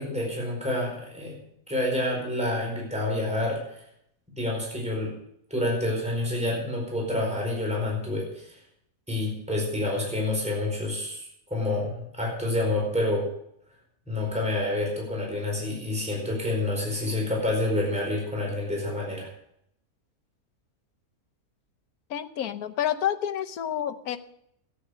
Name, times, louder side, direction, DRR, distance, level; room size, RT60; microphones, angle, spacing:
voice 1, 0.0-1.4 1.7-3.8 4.3-5.1 5.5-8.6 9.1-11.2 11.5-13.3 14.1-19.3, left 1 dB, 5° right, -2 dB, 4.6 m, -28 dB
voice 2, 22.1-24.2, left 10 dB, 75° left, 8 dB, 1.3 m, -29 dB
13.5 x 10.0 x 6.4 m, 0.73 s
omnidirectional pair, 1.6 m